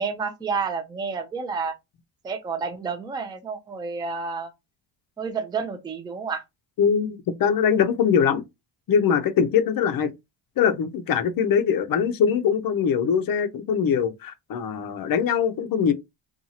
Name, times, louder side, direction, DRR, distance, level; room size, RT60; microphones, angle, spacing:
voice 1, 0.0-1.8 2.2-4.5 5.2-6.4, right 5 dB, 10° right, 0.3 m, -30 dB
voice 2, 6.8-8.4 8.9-10.1 10.6-15.9, left 7 dB, 45° left, 0.5 m, -22 dB
2.7 x 2.3 x 2.7 m
cardioid pair, 90°, 50 cm